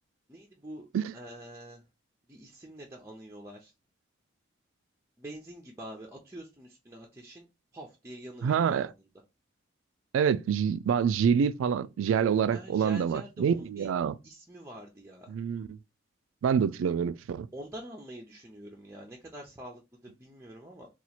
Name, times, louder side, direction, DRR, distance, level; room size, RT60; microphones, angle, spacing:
voice 1, 0.3-0.9 1.1-1.8 2.3-3.7 5.2-8.9 12.5-13.9 14.2-15.3 17.5-20.9, right 1 dB, 15° right, 0.4 m, -46 dB
voice 2, 8.4-8.9 10.1-14.1 15.3-15.7 16.4-17.5, right 7 dB, 85° right, 0.3 m, -26 dB
2.8 x 2.3 x 4.2 m
head